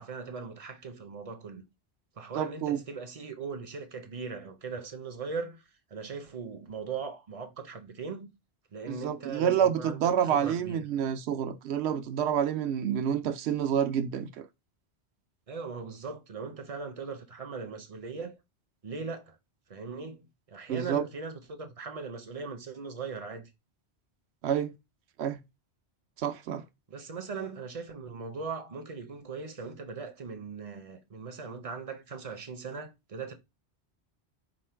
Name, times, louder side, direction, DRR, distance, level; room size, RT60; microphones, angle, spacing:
voice 1, 0.0-1.7 2.2-8.3 8.7-10.8 15.5-18.4 18.8-19.4 19.7-23.5 26.9-33.3, right 5 dB, 40° right, 0.6 m, -39 dB
voice 2, 2.3-2.8 8.9-14.4 20.7-21.0 24.4-24.7 25.2-25.4 26.2-26.6, right 9 dB, 80° right, 0.9 m, -28 dB
5.0 x 2.1 x 4.3 m
omnidirectional pair, 1.1 m